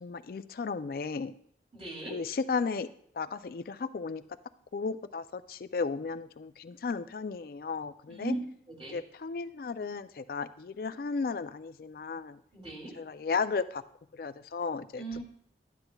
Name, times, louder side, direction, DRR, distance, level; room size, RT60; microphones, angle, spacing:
voice 1, 0.0-1.3 2.1-2.9 3.2-4.2 4.7-8.4 8.9-12.4 12.9-13.8 14.1-15.0, left 4 dB, 55° left, 12 dB, 0.3 m, -34 dB
voice 2, 1.7-2.2 8.1-8.4 8.7-8.9 12.5-12.9 15.0-15.2, right 2 dB, 30° right, -3 dB, 2.7 m, -37 dB
12.5 x 9.7 x 2.3 m, 0.64 s
head